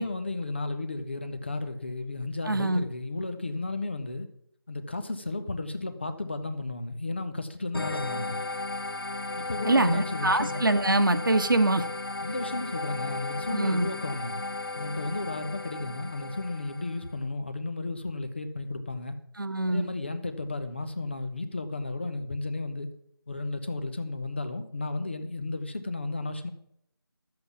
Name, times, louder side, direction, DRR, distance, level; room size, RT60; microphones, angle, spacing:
voice 1, 0.0-4.3 4.7-8.4 9.4-10.6 12.2-14.3 14.7-19.2 19.7-22.9 23.3-26.5, left 2 dB, 25° left, 9 dB, 0.9 m, -33 dB
voice 2, 2.5-2.8 9.6-11.8 13.5-13.9 19.4-19.9, right 2 dB, 60° right, 9 dB, 1.2 m, -24 dB
sound 1, 7.7-17.1, left 2 dB, 65° left, 0.9 m, -35 dB
12.5 x 7.9 x 7.2 m, 0.72 s
figure-of-eight pair, 170°, 13 cm